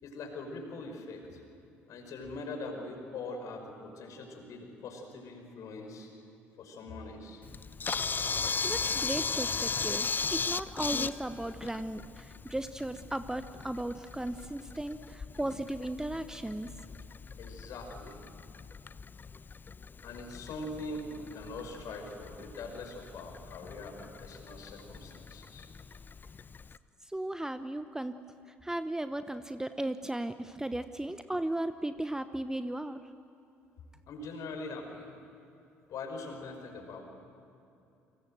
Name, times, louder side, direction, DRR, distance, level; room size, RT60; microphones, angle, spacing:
voice 1, 0.0-1.4 1.9-6.1 6.6-7.4 17.4-18.2 20.0-25.7 34.1-35.1 35.9-37.0, left 2 dB, 50° left, 4 dB, 5.6 m, -42 dB
Camera, 7.4-26.8, left 5 dB, 30° left, 0.9 m, -38 dB
voice 2, 8.4-16.7 27.0-28.2 28.5-33.0, right 1 dB, 10° right, 11 dB, 1.0 m, -36 dB
29.5 x 25.5 x 7.9 m, 2.8 s
figure-of-eight pair, 50°, 7 cm